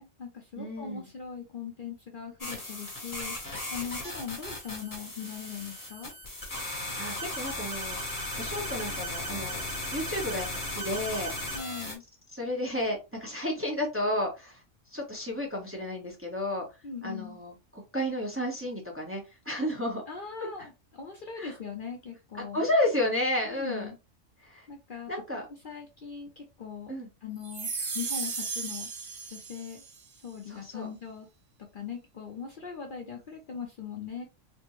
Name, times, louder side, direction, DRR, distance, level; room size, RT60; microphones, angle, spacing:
voice 1, 0.0-3.4 3.7-6.1 11.5-12.0 16.8-17.4 20.1-22.7 23.4-24.0 24.7-25.1 25.6-26.9 27.2-27.7 27.9-28.9 29.3-29.8 30.2-31.3 31.7-34.2, left 6 dB, 50° left, 1 dB, 0.7 m, -40 dB
voice 2, 0.6-1.1 6.6-9.6 9.9-11.6 12.3-14.6 14.9-16.6 17.0-20.0 21.4-21.5 22.3-23.9 24.4-24.7 25.1-25.4 26.9-27.1 30.5-30.9, left 1 dB, 10° right, -1 dB, 0.8 m, -32 dB
sound 1, 2.4-11.9, left 1 dB, 15° left, 1.2 m, -36 dB
sound 2, 27.4-30.0, right 4 dB, 85° right, 1.5 m, -35 dB
4.2 x 2.1 x 3.0 m, 0.27 s
omnidirectional pair, 1.3 m